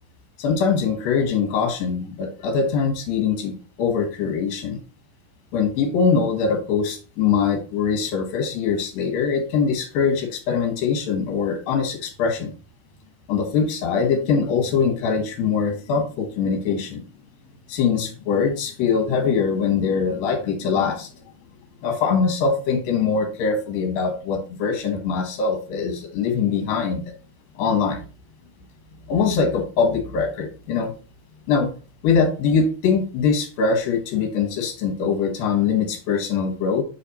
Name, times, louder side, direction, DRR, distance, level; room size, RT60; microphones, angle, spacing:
voice 1, 0.4-4.8 5.5-12.5 13.3-17.0 17.7-21.1 21.8-27.0 27.6-28.0 29.1-30.9 31.5-31.7 32.0-36.8, left 5 dB, 70° left, 5 dB, 3.0 m, -22 dB
6.9 x 4.2 x 4.1 m, 0.36 s
omnidirectional pair, 4.4 m